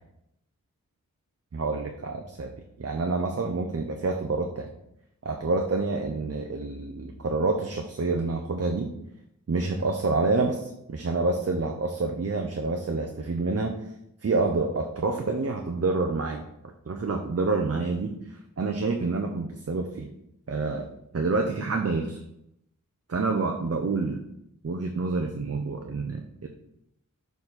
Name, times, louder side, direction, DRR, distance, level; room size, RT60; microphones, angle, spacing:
voice 1, 1.5-2.5 2.8-4.7 5.2-8.9 9.5-13.7 14.2-16.4 16.9-20.1 20.5-20.9 21.1-22.2 23.1-24.2 24.6-26.5, right 3 dB, 45° right, 3 dB, 0.8 m, -28 dB
6.7 x 4.1 x 4.2 m, 0.80 s
cardioid pair, 45°, 33 cm